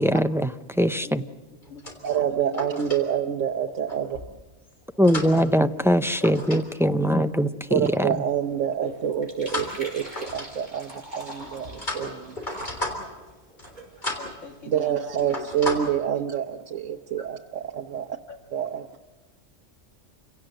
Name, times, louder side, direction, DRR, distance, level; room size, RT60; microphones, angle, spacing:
voice 1, 0.0-1.2 5.0-8.1, equal, 5° right, 10 dB, 0.3 m, -22 dB
voice 2, 1.0-3.2 6.2-6.3 7.2-7.3 8.0-8.2 8.8-9.0 9.6-9.7 10.6-10.7 14.2-16.3 17.2-17.3 18.3-18.4, left 4 dB, 80° left, 3 dB, 2.3 m, -43 dB
sound 1, 1.6-3.0 3.9-4.3 4.8-6.6 6.9-7.2 9.5-10.8 11.4-13.2 13.5-13.8 14.0-14.4 14.7-14.9 15.2-15.8, left 2 dB, 40° left, 3.8 m, -34 dB
voice 3, 2.0-4.1 7.7-10.8 11.2-12.4 14.7-17.4 17.7-18.1 18.5-18.8, right 9 dB, 85° right, 3 dB, 1.3 m, -27 dB
sound 2, 7.6-14.8, right 1 dB, 35° right, 4.9 m, -45 dB
28.0 x 17.5 x 7.8 m, 1.2 s
omnidirectional pair, 1.3 m